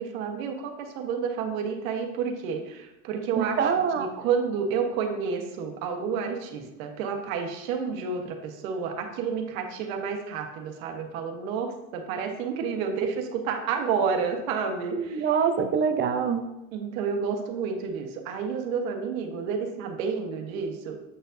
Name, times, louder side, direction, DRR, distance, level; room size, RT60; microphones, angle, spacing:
voice 1, 0.0-15.3 16.7-21.0, right 6 dB, 85° right, 3 dB, 1.3 m, -30 dB
voice 2, 3.4-4.1 14.9-16.4, right 6 dB, 25° right, 6 dB, 0.7 m, -25 dB
7.8 x 6.7 x 2.7 m, 0.99 s
supercardioid pair, 140°, 40 cm